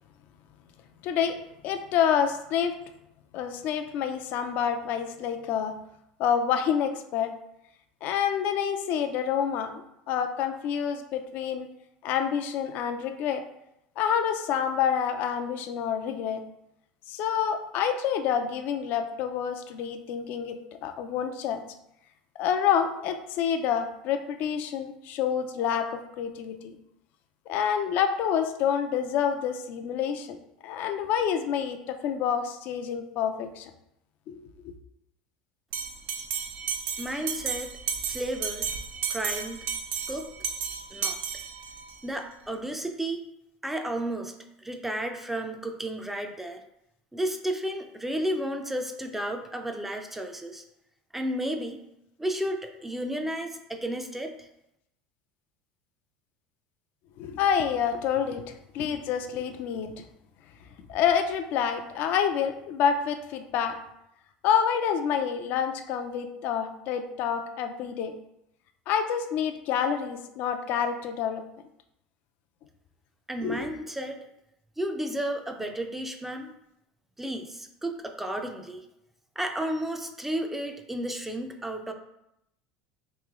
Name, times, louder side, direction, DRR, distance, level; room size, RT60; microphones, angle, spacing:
voice 1, 1.0-2.8 3.3-5.8 6.2-7.3 8.0-11.7 12.0-13.4 14.0-16.4 17.1-21.6 22.4-26.8 27.5-30.4 30.6-33.7 34.3-34.7 57.2-59.9 60.9-63.8 64.4-68.1 68.9-71.4 73.4-73.7, left 8 dB, 60° left, 8 dB, 0.4 m, -28 dB
Bell, 35.7-42.0, right 7 dB, 65° right, 0.5 m, -33 dB
voice 2, 37.0-37.8 38.1-38.7 39.1-39.7 40.1-40.3 40.9-41.2 42.0-43.3 43.6-44.3 44.6-46.6 47.1-50.6 51.1-51.8 52.2-54.5 73.3-74.3 74.8-76.5 77.2-78.8 79.4-81.9, right 1 dB, 5° right, 5 dB, 0.4 m, -32 dB
3.1 x 2.9 x 3.6 m, 0.82 s
supercardioid pair, 95°, 3 cm